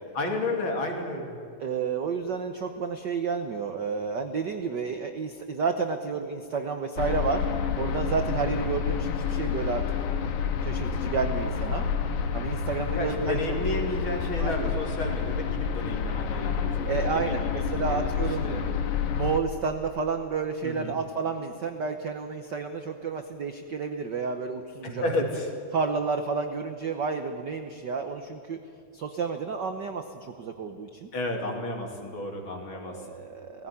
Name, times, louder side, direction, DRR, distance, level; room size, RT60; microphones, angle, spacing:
voice 1, 0.1-1.4 8.4-8.6 13.0-18.1 18.4-18.6 20.6-20.9 24.8-25.5 31.1-33.0, left 2 dB, 45° left, 2 dB, 3.3 m, -32 dB
voice 2, 1.6-7.5 7.8-9.8 10.6-11.9 12.3-13.4 13.7-13.8 14.4-14.7 16.8-18.6 19.1-25.0 25.7-28.6 28.9-31.1 32.8-33.7, right 5 dB, 75° right, 7 dB, 0.9 m, -31 dB
sound 1, 7.0-19.4, left 6 dB, 85° left, 2.7 m, -29 dB
18.5 x 16.0 x 9.7 m, 2.6 s
omnidirectional pair, 3.4 m